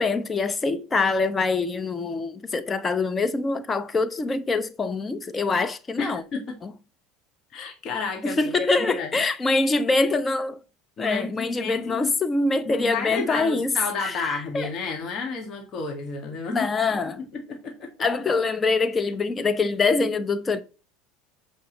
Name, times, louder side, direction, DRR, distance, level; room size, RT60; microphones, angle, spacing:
voice 1, 0.0-6.2 6.6-6.7 8.2-10.6 11.0-14.7 16.5-17.2 18.0-20.6, left 3 dB, 25° left, 0.9 m, -24 dB
voice 2, 6.0-6.6 7.5-9.1 11.0-12.1 12.7-16.7 17.0-17.9, left 4 dB, 40° left, 1.9 m, -31 dB
7.7 x 5.1 x 4.1 m
figure-of-eight pair, 70°, 0 cm